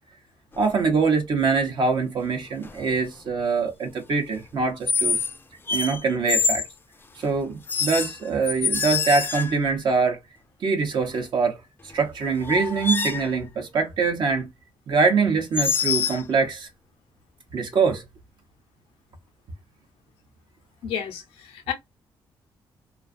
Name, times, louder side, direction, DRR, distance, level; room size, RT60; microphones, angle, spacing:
sound 1, 0.5-0.9 2.6-3.0 4.9-5.4 5.7-6.7 7.7-9.7 11.9-12.0 12.4-13.3 15.5-16.2, left 5 dB, 25° left, 0.4 m, -25 dB
voice 1, 0.6-5.2 5.7-6.6 7.1-10.2 10.6-14.5 14.9-16.7 17.5-18.0, right 4 dB, 60° right, 0.7 m, -24 dB
voice 2, 20.8-21.2 21.5-21.7, left 8 dB, 90° left, 0.6 m, -29 dB
2.4 x 2.4 x 2.4 m
cardioid pair, 80°, 9 cm